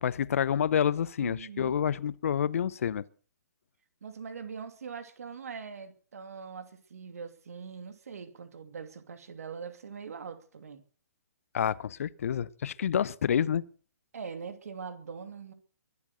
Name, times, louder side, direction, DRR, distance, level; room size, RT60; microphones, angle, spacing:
voice 1, 0.0-3.0 11.5-13.6, left 8 dB, 55° left, 0.8 m, -28 dB
voice 2, 1.2-1.8 4.0-10.8 14.1-15.5, right 6 dB, 60° right, 2.6 m, -42 dB
22.5 x 8.5 x 6.5 m
figure-of-eight pair, 130°, 9 cm